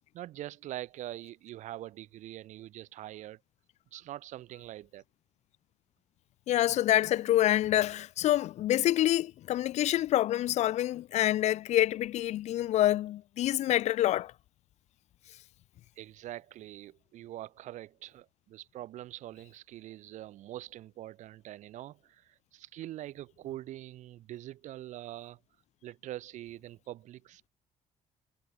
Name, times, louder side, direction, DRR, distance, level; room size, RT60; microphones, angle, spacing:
voice 1, 0.1-3.4 3.9-5.0 16.0-25.4 25.8-27.5, right 14 dB, 65° right, 4.8 m, -44 dB
voice 2, 6.5-14.3, left 13 dB, 60° left, 0.9 m, -27 dB
cardioid pair, 165°, 13 cm